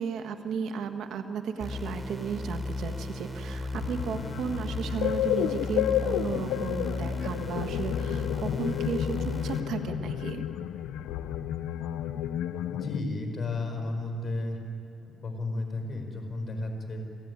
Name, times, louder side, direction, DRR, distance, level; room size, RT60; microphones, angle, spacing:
voice 1, 0.0-10.4, right 6 dB, 75° right, 7 dB, 1.5 m, -34 dB
sound 1, 1.6-9.6, left 2 dB, 10° right, 3.4 m, -35 dB
sound 2, 3.7-13.0, left 11 dB, 90° left, 0.6 m, -31 dB
voice 2, 12.7-14.6 15.0-17.0, left 2 dB, 40° left, 4 dB, 5.0 m, -33 dB
27.5 x 16.0 x 9.6 m, 2.6 s
cardioid pair, 90°, 0 cm